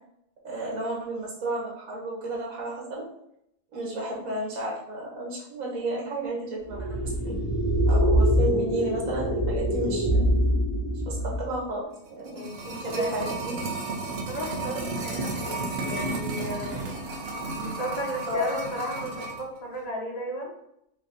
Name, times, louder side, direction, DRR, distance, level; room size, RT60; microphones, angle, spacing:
voice 1, 0.4-3.1 3.7-6.9 7.2-7.3 7.9-10.2 11.0-13.5 18.3-18.5, right 1 dB, 90° right, -3 dB, 1.6 m, -32 dB
sound 1, 6.7-11.5, equal, 25° right, 1.7 m, -24 dB
sound 2, 12.0-19.5 19.7-19.8, right 2 dB, 55° right, 0.8 m, -33 dB
voice 2, 12.3-13.3 14.0-16.7 17.5-20.5, equal, 35° left, -1 dB, 0.8 m, -35 dB
5.1 x 2.8 x 2.6 m, 0.77 s
omnidirectional pair, 1.4 m